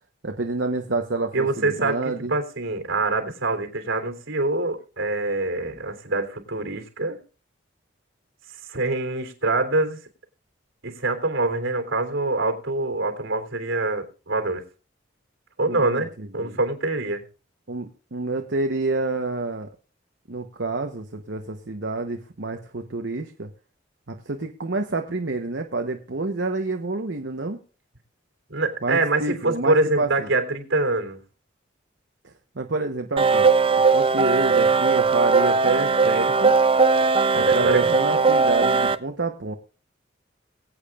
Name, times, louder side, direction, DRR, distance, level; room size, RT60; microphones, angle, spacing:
voice 1, 0.2-2.3 15.7-16.6 17.7-19.7 20.3-23.5 24.1-27.6 28.8-30.3 32.2-33.4 33.9-36.5 37.3-39.5, right 3 dB, 60° right, 4 dB, 1.0 m, -28 dB
voice 2, 1.3-7.2 8.7-10.0 10.8-14.6 15.6-17.2 28.5-31.2 37.3-37.9, right 2 dB, 75° right, 4 dB, 3.2 m, -25 dB
sound 1, 33.2-39.0, right 4 dB, 25° right, 0.4 m, -19 dB
22.0 x 8.7 x 2.4 m, 0.37 s
head